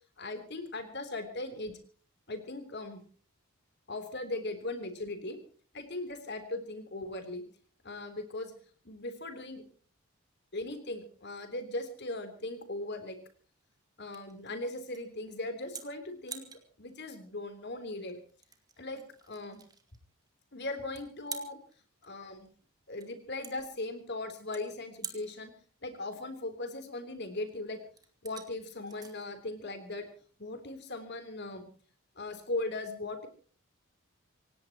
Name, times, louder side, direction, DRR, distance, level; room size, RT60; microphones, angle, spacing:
voice 1, 0.2-1.8 2.3-3.0 3.9-5.4 5.7-7.4 7.8-8.5 8.8-9.6 10.5-13.2 14.0-16.5 16.8-18.2 18.8-19.6 20.5-21.6 22.0-22.5 22.9-25.5 25.8-27.8 28.2-30.1 30.4-31.7 32.2-33.3, left 2 dB, 50° left, 8 dB, 3.4 m, -38 dB
sound 1, 12.0-30.7, right 6 dB, 20° right, 2.2 m, -50 dB
27.0 x 17.5 x 2.9 m, 0.43 s
head